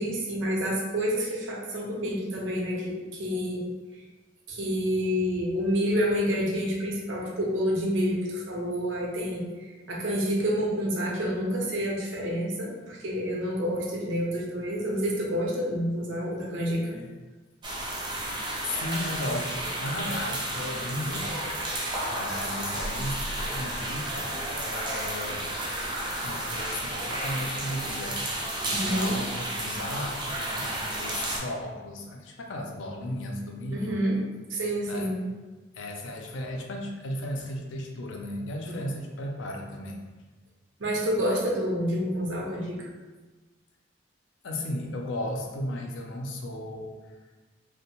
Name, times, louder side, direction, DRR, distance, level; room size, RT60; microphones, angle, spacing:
voice 1, 0.0-3.6 4.5-9.5 9.9-16.9 28.7-29.2 33.7-34.2 34.5-35.2 40.8-42.8, equal, 85° right, -2 dB, 0.6 m, -28 dB
sound 1, 17.6-31.4, right 1 dB, 25° right, 0.4 m, -32 dB
voice 2, 18.6-21.4 22.1-25.4 25.7-28.4 28.6-34.0 34.9-35.1 35.7-40.0 44.4-46.9, left 1 dB, 90° left, 1 dB, 0.4 m, -35 dB
2.7 x 2.1 x 2.9 m, 1.2 s
head